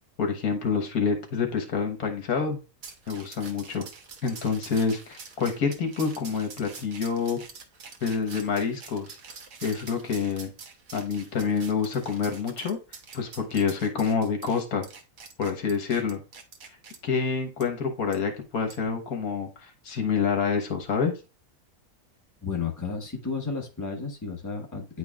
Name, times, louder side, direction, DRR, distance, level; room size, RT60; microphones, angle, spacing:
voice 1, 0.2-2.6 3.1-3.9 4.2-7.4 8.0-9.2 9.6-10.5 10.9-12.8 13.1-14.9 15.4-16.2 17.0-21.1, left 5 dB, 75° left, 4 dB, 1.7 m, -27 dB
sound 1, 2.8-17.0 17.6-17.7 18.1-18.2 18.7-18.9, right 5 dB, 70° right, 1.5 m, -46 dB
voice 2, 22.4-25.0, left 5 dB, 15° left, 1 dB, 1.2 m, -32 dB
9.7 x 4.5 x 2.4 m, 0.30 s
omnidirectional pair, 1.6 m